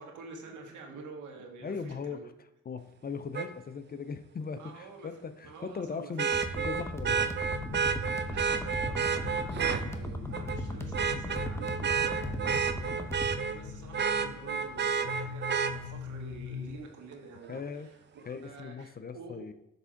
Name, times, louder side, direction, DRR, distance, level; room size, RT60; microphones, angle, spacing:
voice 1, 0.0-2.2 4.6-6.3 7.9-18.0 18.4-19.5, right 4 dB, 75° right, 2 dB, 1.6 m, -48 dB
voice 2, 1.6-2.3 2.7-6.3 6.6-7.4 17.5-17.9 18.3-19.5, left 5 dB, 30° left, 10 dB, 0.5 m, -39 dB
Vehicle horn car horn honking, 3.3-3.5 6.2-9.8 10.3-10.6 10.9-13.6 13.9-15.7 17.6-17.7, right 6 dB, 35° right, 0.6 m, -30 dB
sound 1, 6.3-13.3, equal, 10° left, 0.8 m, -37 dB
sound 2, 7.5-16.8, left 6 dB, 75° left, 1.0 m, -42 dB
8.0 x 3.6 x 5.7 m, 0.84 s
cardioid pair, 90°, 30 cm